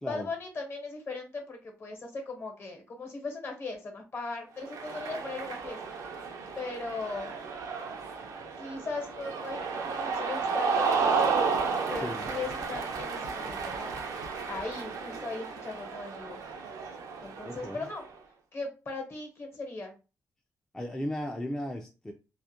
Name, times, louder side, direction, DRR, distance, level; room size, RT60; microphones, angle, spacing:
voice 1, 0.0-5.8 6.5-7.3 8.6-11.6 11.9-13.9 14.5-16.4 17.2-18.0 18.5-19.9, left 3 dB, 45° left, 3 dB, 0.9 m, -38 dB
Cheering, 4.6-18.1, right 5 dB, 90° right, 0.4 m, -33 dB
voice 2, 17.4-17.8 20.7-22.1, left 1 dB, 10° left, 2 dB, 0.3 m, -35 dB
2.3 x 2.1 x 2.8 m, 0.31 s
cardioid pair, 100°, 6 cm